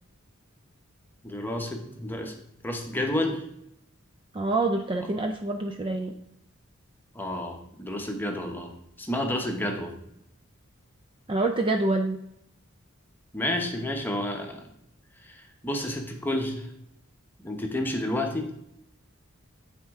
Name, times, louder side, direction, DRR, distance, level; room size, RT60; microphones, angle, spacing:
voice 1, 1.2-2.4 2.6-3.4 7.1-8.7 9.0-9.9 13.3-14.6 15.2-16.7 17.4-18.5, left 1 dB, 10° left, 2 dB, 0.9 m, -30 dB
voice 2, 4.3-6.1 11.3-12.2, right 2 dB, 25° right, 5 dB, 0.4 m, -26 dB
9.1 x 4.3 x 3.6 m, 0.78 s
head